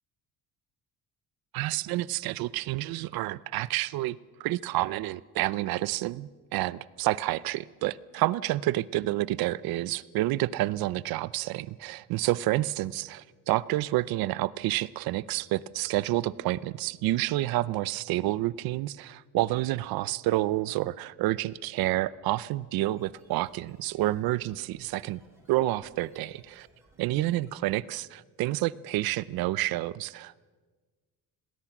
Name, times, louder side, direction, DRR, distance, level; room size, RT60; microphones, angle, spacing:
voice 1, 1.5-25.2 25.5-26.7 27.0-30.4, right 16 dB, 70° right, 19 dB, 0.7 m, -29 dB
sound 1, 22.8-28.0, right 2 dB, 5° right, 4.5 m, -62 dB
27.5 x 19.5 x 6.1 m, 1.4 s
cardioid pair, 180°, 37 cm